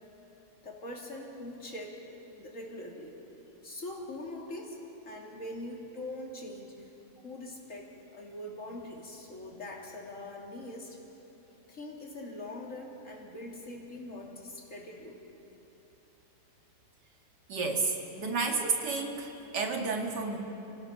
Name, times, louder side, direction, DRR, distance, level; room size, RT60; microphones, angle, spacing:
voice 1, 0.6-3.1 3.6-4.8 5.1-11.0 11.7-15.2, left 1 dB, 50° left, -1 dB, 3.1 m, -43 dB
voice 2, 17.5-20.4, right 4 dB, 85° right, 2 dB, 2.5 m, -31 dB
29.0 x 18.0 x 5.7 m, 3.0 s
omnidirectional pair, 1.8 m